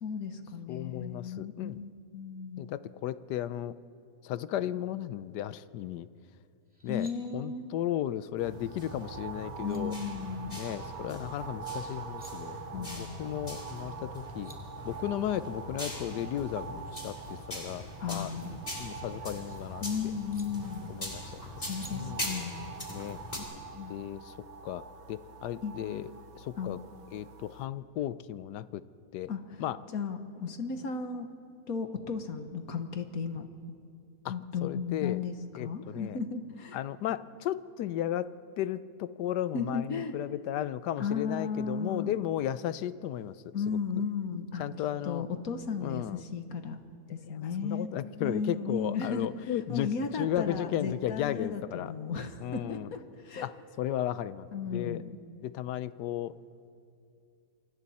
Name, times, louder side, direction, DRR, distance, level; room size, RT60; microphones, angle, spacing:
voice 1, 0.0-2.8 6.9-7.7 9.6-10.6 12.7-13.4 18.0-18.5 19.8-20.9 21.7-22.7 23.7-23.9 25.6-25.7 26.6-26.7 29.3-29.6 29.9-31.3 31.7-33.5 34.3-36.8 39.5-40.2 41.0-42.2 43.5-44.7 45.0-46.8 47.1-47.9 48.2-49.3 49.7-53.5 54.5-55.2, left 5 dB, 60° left, 7 dB, 1.6 m, -35 dB
voice 2, 0.7-1.8 2.6-3.7 4.2-6.1 6.8-7.1 7.3-9.9 10.6-14.5 14.8-18.3 18.8-19.8 20.9-21.3 21.9-22.3 22.9-23.2 23.9-24.3 24.6-26.1 26.3-26.8 27.1-28.8 29.1-29.3 29.6-29.8 34.2-34.3 34.6-35.2 35.6-36.2 36.7-43.4 43.7-43.8 44.6-45.3 45.8-46.2 47.3-49.9 50.2-51.9 52.4-52.9 53.4-55.0 55.4-56.3, left 11 dB, 90° left, 15 dB, 1.3 m, -35 dB
sound 1, 6.7-7.1 9.2-9.3 9.6-9.8 11.9-12.3 14.0-14.1 14.2-14.6 16.5-17.1 18.5-19.6 20.3-20.5 21.7-21.9, right 1 dB, 5° right, 2.3 m, -53 dB
sound 2, 8.4-23.4, left 1 dB, 25° left, 3.2 m, -42 dB
sound 3, 8.4-27.7, right 5 dB, 65° right, 1.6 m, -45 dB
28.0 x 24.5 x 4.2 m, 2.5 s
omnidirectional pair, 1.7 m